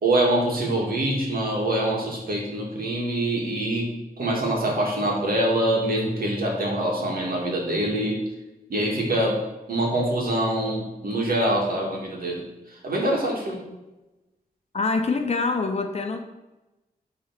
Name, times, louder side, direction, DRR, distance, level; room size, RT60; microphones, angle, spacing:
voice 1, 0.0-3.9 4.2-8.2 8.7-9.4 9.7-12.4 12.8-13.6, right 1 dB, 65° right, -1 dB, 2.1 m, -24 dB
voice 2, 14.7-16.2, left 4 dB, 40° left, 5 dB, 0.8 m, -25 dB
9.2 x 3.9 x 5.9 m, 1.0 s
wide cardioid pair, 155°, 16 cm